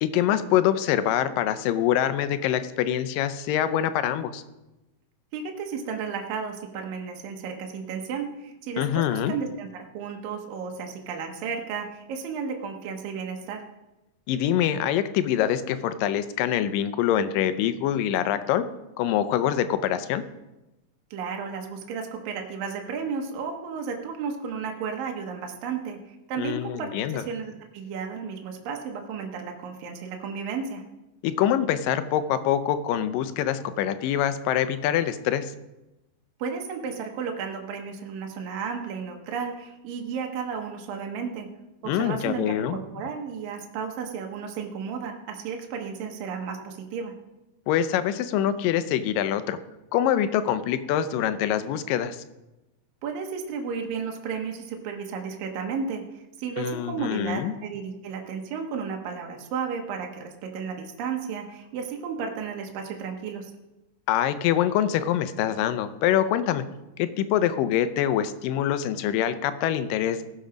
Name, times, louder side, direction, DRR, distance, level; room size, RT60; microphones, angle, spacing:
voice 1, 0.0-4.4 8.8-9.3 14.3-18.6 19.0-20.2 26.4-27.2 31.2-35.5 41.9-42.8 47.7-49.6 49.9-52.2 56.6-57.5 64.1-66.6 67.0-70.2, left 10 dB, 80° left, 12 dB, 2.3 m, -25 dB
voice 2, 5.3-13.6 21.1-30.8 36.4-41.5 41.8-47.1 53.0-63.5, right 6 dB, 75° right, 2 dB, 2.8 m, -33 dB
18.0 x 7.0 x 5.1 m, 0.99 s
omnidirectional pair, 4.1 m